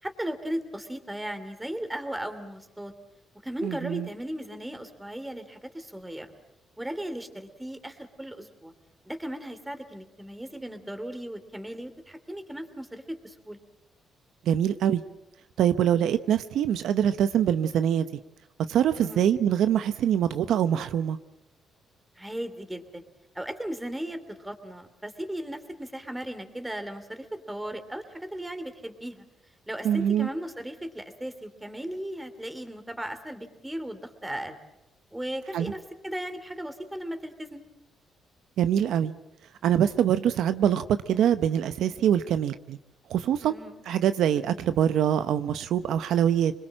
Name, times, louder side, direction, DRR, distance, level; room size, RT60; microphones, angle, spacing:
voice 1, 0.0-2.9 3.4-6.3 6.8-8.7 9.1-13.6 19.0-19.2 22.2-23.0 23.3-29.2 29.7-34.6 35.1-37.6 43.4-43.8, right 1 dB, 10° right, 9 dB, 2.9 m, -36 dB
voice 2, 3.6-4.1 14.5-15.0 15.6-18.1 18.7-21.2 29.8-30.3 35.5-35.7 38.6-39.1 39.6-42.8 43.1-43.5 43.9-46.5, right 9 dB, 75° right, 11 dB, 0.8 m, -24 dB
26.0 x 21.5 x 7.6 m, 0.93 s
cardioid pair, 90°, 0 cm